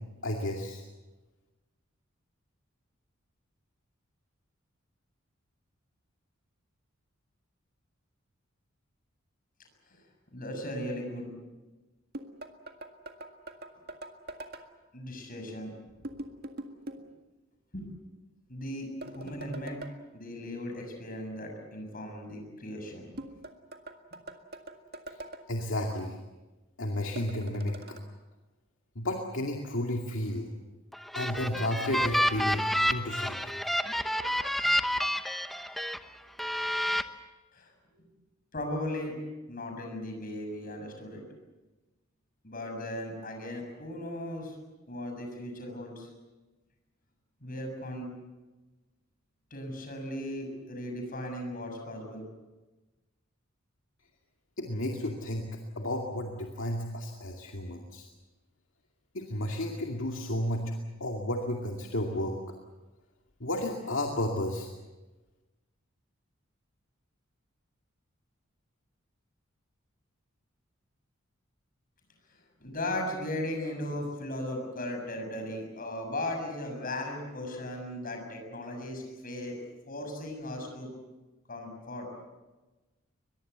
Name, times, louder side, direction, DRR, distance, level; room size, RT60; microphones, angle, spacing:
voice 1, 0.2-0.8 25.5-26.2 26.8-28.0 29.0-30.5 31.1-33.6 54.6-55.5 55.8-58.1 59.1-60.7 61.0-62.3 63.4-64.7, left 1 dB, 70° left, 1 dB, 2.4 m, -32 dB
voice 2, 10.3-11.3 14.9-15.7 17.7-17.9 18.5-19.8 20.1-23.1 37.5-37.7 38.5-39.2 39.5-41.2 42.4-44.6 44.9-46.1 47.4-48.1 49.5-52.2 72.3-79.6 79.9-80.9 81.5-82.1, left 1 dB, 45° left, 3 dB, 6.9 m, -37 dB
sound 1, 12.1-14.7 16.0-17.1 19.0-20.0 23.2-25.4 27.2-28.0, right 1 dB, 50° right, 1.9 m, -43 dB
sound 2, 30.9-36.0 36.4-37.0, equal, ahead, 0.9 m, -29 dB
23.0 x 22.5 x 8.1 m, 1.1 s
head